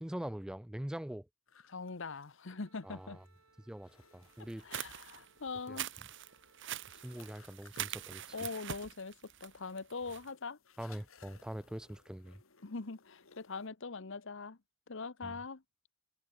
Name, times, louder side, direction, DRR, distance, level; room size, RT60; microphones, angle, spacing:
voice 1, 0.0-1.3 2.8-3.2 3.7-4.7 5.7-5.8 7.0-8.5 10.8-12.4 15.2-15.4, right 1 dB, 5° right, 0.3 m, -43 dB
sound 1, 1.5-13.7, left 6 dB, 80° left, 2.1 m, -65 dB
voice 2, 1.7-3.2 4.6-5.9 8.3-9.1 9.4-10.6 12.6-14.6 14.9-15.6, left 4 dB, 65° left, 1.1 m, -42 dB
Wind instrument woodwind instrument, 2.4-7.6, right 4 dB, 80° right, 4.7 m, -69 dB
sound 2, 4.5-10.3, right 10 dB, 60° right, 1.2 m, -43 dB
head